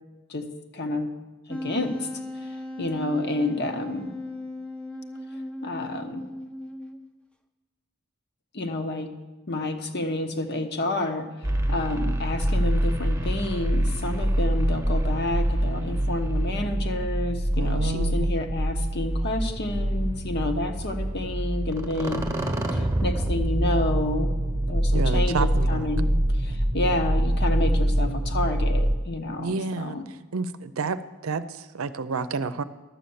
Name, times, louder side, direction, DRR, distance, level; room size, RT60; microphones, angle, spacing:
voice 1, 0.7-1.1 1.5-2.1 2.4-4.1 5.6-6.2 8.5-9.1 9.5-22.3 22.7-24.3 24.7-26.1 26.3-30.1, left 2 dB, 55° left, 6 dB, 1.1 m, -29 dB
Wind instrument woodwind instrument, 1.5-7.2, left 1 dB, 5° left, 0.7 m, -37 dB
sound 1, 11.4-29.0, right 1 dB, 15° right, 1.1 m, -25 dB
voice 2, 17.5-18.3 24.9-25.9 29.4-30.0 30.3-31.0 31.2-32.6, right 4 dB, 80° right, 12 dB, 0.6 m, -29 dB
12.0 x 7.7 x 7.0 m, 1.2 s
head